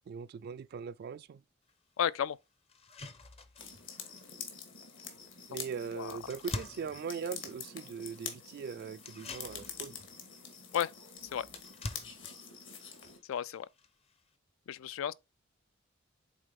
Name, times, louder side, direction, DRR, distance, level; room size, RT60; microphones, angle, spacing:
voice 1, 0.1-1.4 5.5-10.0, right 6 dB, 50° right, 0.3 m, -40 dB
sound 1, 1.7-1.8 2.2-2.3 2.7-14.4, left 2 dB, 30° left, 0.6 m, -48 dB
voice 2, 2.0-2.4 5.9-6.2 10.7-10.9 11.3-11.5 13.3-13.7 14.7-15.1, left 9 dB, 85° left, 0.3 m, -32 dB
sound 2, 3.6-13.2, left 6 dB, 70° left, 1.8 m, -46 dB
8.2 x 3.7 x 3.5 m
head